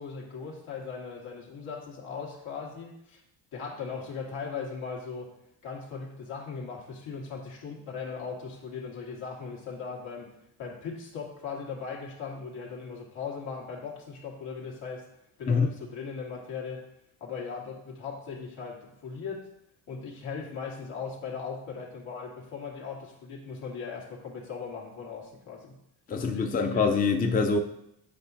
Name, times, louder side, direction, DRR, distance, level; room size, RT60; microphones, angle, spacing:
voice 1, 0.0-3.2 3.5-5.3 5.6-10.3 10.6-15.0 15.4-16.8 17.2-19.4 19.9-25.7 26.1-26.9, left 5 dB, 75° left, -2 dB, 1.8 m, -38 dB
voice 2, 26.1-27.6, left 4 dB, 20° left, 4 dB, 0.6 m, -24 dB
8.4 x 4.9 x 2.7 m, 0.79 s
supercardioid pair, 70°, 48 cm